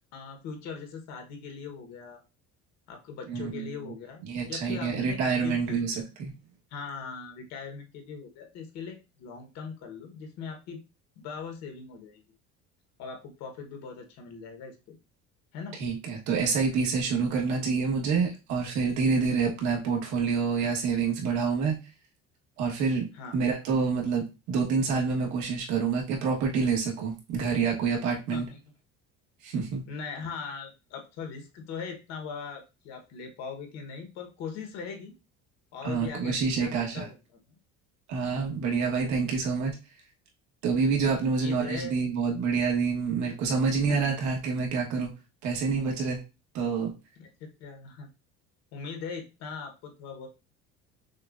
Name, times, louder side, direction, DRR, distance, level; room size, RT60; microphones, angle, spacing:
voice 1, 0.1-2.2 2.9-4.2 4.5-6.0 6.7-10.8 11.2-12.2 13.0-14.9 15.5-15.8 23.1-23.4 28.3-28.6 29.9-35.1 35.7-37.2 38.8-38.9 41.2-42.0 43.9-44.0 47.2-48.1 48.7-50.3, left 5 dB, 60° left, 4 dB, 1.1 m, -40 dB
voice 2, 3.3-3.7 4.2-5.9 6.2-6.3 15.8-21.8 22.6-23.1 23.3-28.5 29.4-29.8 35.8-37.1 38.1-39.7 40.6-45.1 45.4-46.2 46.5-46.9, right 5 dB, 70° right, -1 dB, 1.4 m, -27 dB
6.3 x 2.3 x 2.5 m, 0.28 s
cardioid pair, 165°, 30 cm